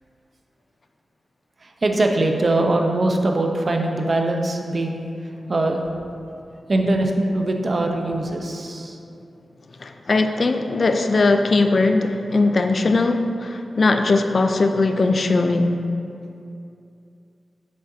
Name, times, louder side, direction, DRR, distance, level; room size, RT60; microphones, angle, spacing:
voice 1, 1.6-5.8 6.7-9.0, right 2 dB, 50° right, 3 dB, 0.7 m, -22 dB
voice 2, 9.8-15.8, left 3 dB, 55° left, 7 dB, 0.5 m, -19 dB
7.6 x 6.5 x 2.7 m, 2.6 s
cardioid pair, 55°, 0 cm